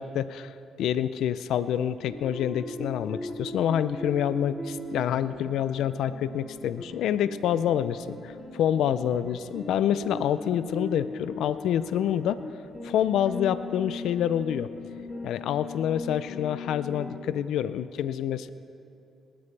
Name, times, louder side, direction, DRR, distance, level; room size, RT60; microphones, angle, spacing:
voice 1, 0.0-12.4 12.8-14.7 15.2-18.5, left 10 dB, 80° left, 14 dB, 0.5 m, -27 dB
sound 1, 2.1-17.2, left 2 dB, 20° left, 2.9 m, -39 dB
26.0 x 12.5 x 3.4 m, 2.8 s
cardioid pair, 90°, 0 cm